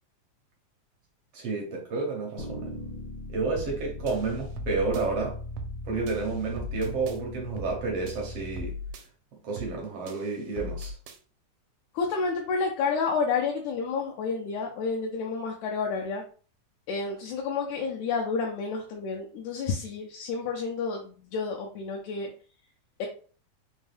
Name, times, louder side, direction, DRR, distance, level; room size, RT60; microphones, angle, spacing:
voice 1, 1.3-2.8 3.3-5.4 5.8-8.7 9.4-11.0, right 4 dB, 70° right, 1.5 m, -30 dB
sound 1, 2.4-8.6, left 2 dB, 60° left, 1.3 m, -39 dB
sound 2, 3.6-3.8 4.1-5.1 5.6-5.8 6.1-7.2 7.6-7.8 8.1-9.1 9.6-9.8 10.1-11.2, left 1 dB, 85° right, 2.2 m, -39 dB
voice 2, 11.9-16.2 16.9-22.3 23.0-23.1, left 5 dB, 80° left, 1.8 m, -30 dB
5.2 x 2.2 x 3.3 m
omnidirectional pair, 3.7 m